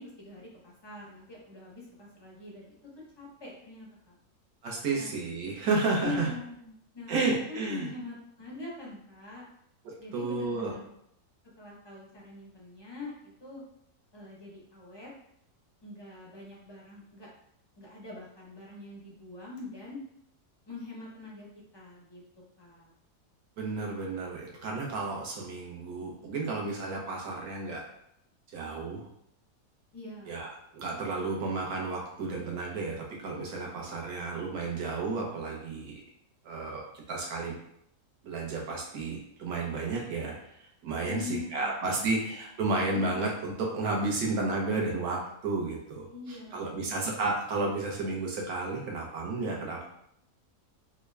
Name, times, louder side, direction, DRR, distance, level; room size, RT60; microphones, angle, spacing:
voice 1, 0.0-2.7 3.2-4.2 4.9-5.1 6.0-9.4 10.0-10.9 11.6-13.1 13.4-13.6 14.1-15.1 15.8-17.3 17.8-20.0 20.7-21.5 21.7-22.2 22.6-22.9 29.9-30.4 41.0-42.1 46.1-47.0, left 3 dB, 40° left, -4 dB, 0.4 m, -43 dB
voice 2, 4.6-6.3 7.1-7.9 9.8-10.7 23.6-27.8 28.5-29.1 30.3-30.5 30.7-36.0 36.4-37.6 38.2-40.4 40.8-49.9, right 3 dB, 70° right, -1 dB, 1.3 m, -32 dB
3.6 x 2.2 x 3.2 m, 0.74 s
omnidirectional pair, 1.7 m